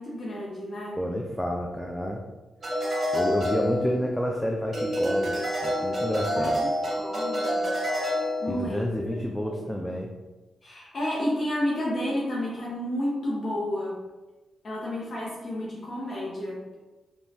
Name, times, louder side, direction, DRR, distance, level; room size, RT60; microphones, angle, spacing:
voice 1, 0.0-1.0 6.3-7.6 8.4-8.9 9.5-9.7 10.6-14.0 14.6-16.7, left 1 dB, 50° left, -5 dB, 0.7 m, -31 dB
voice 2, 0.9-2.2 3.1-5.4 5.6-6.6 8.5-10.1, equal, 5° left, 0 dB, 0.3 m, -29 dB
sound 1, 2.6-4.3 4.7-8.7, equal, 45° right, 0.8 m, -28 dB
3.1 x 2.2 x 2.7 m, 1.1 s
cardioid pair, 70°, 0 cm